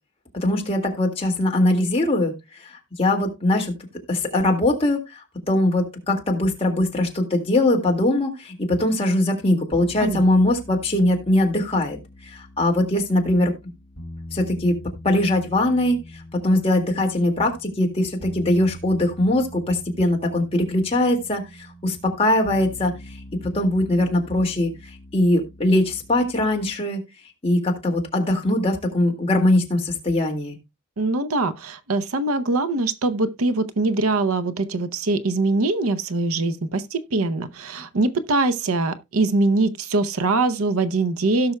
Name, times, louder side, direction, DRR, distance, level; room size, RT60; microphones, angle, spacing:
voice 1, 0.4-2.3 2.6-3.7 4.1-12.0 12.2-13.5 14.3-14.8 15.0-16.0 16.4-21.4 21.8-22.9 23.5-24.7 25.1-27.0 27.4-30.6, left 1 dB, 25° left, 2.0 m, -21 dB
sound 1, 9.7-26.7, equal, 60° left, 3.6 m, -43 dB
voice 2, 31.0-41.6, right 2 dB, 80° right, 0.7 m, -23 dB
17.0 x 5.9 x 2.2 m
head